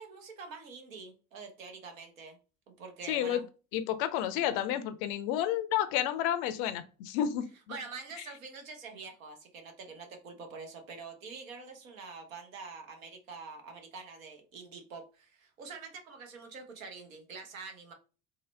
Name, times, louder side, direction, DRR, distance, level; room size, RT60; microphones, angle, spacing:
voice 1, 0.0-2.4 2.8-3.4 7.7-17.9, right 4 dB, 75° right, 4 dB, 0.9 m, -46 dB
voice 2, 3.1-3.4 3.7-7.8, left 11 dB, 60° left, 12 dB, 0.5 m, -31 dB
3.7 x 2.1 x 3.2 m, 0.35 s
figure-of-eight pair, 55°, 41 cm